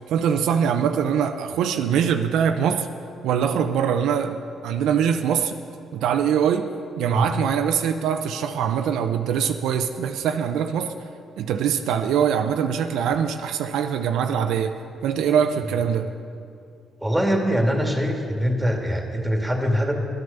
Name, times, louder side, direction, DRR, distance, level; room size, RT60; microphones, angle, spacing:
voice 1, 0.1-2.9 3.2-5.6 5.9-6.7 7.0-10.9 11.4-16.1, right 8 dB, 85° right, 7 dB, 0.6 m, -23 dB
voice 2, 17.0-19.9, equal, 5° right, 2 dB, 1.9 m, -23 dB
11.5 x 9.6 x 6.7 m, 2.4 s
cardioid pair, 90°, 0 cm